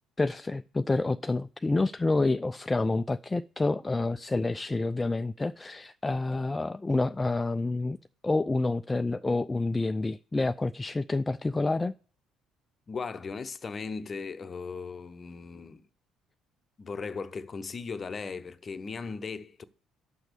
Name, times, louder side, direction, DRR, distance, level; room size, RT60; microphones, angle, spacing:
voice 1, 0.2-8.0 8.2-12.0, left 2 dB, 20° left, 0.3 m, -28 dB
voice 2, 12.9-15.9 16.8-19.6, left 4 dB, 35° left, 0.7 m, -37 dB
7.4 x 6.0 x 6.7 m
figure-of-eight pair, 50°, 0 cm